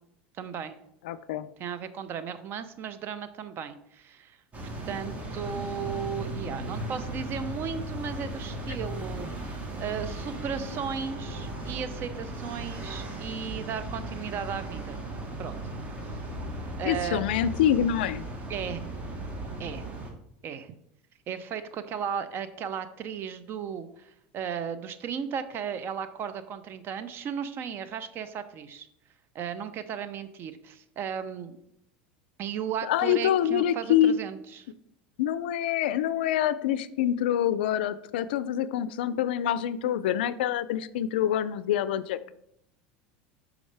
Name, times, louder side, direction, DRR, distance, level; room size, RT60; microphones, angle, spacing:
voice 1, 0.4-0.7 1.6-4.4 4.9-15.0 15.4-15.6 16.8-17.2 18.5-18.8 19.6-19.8 20.4-20.7 21.3-28.9 29.3-31.6 32.4-34.7, right 7 dB, 45° right, 12 dB, 0.6 m, -35 dB
voice 2, 1.0-1.5 16.9-18.2 32.8-34.2 35.2-42.2, left 10 dB, 80° left, 16 dB, 0.3 m, -26 dB
sound 1, 4.5-20.1, right 1 dB, 25° right, 1.4 m, -37 dB
6.3 x 4.9 x 3.3 m, 0.76 s
hypercardioid pair, 95°, 5 cm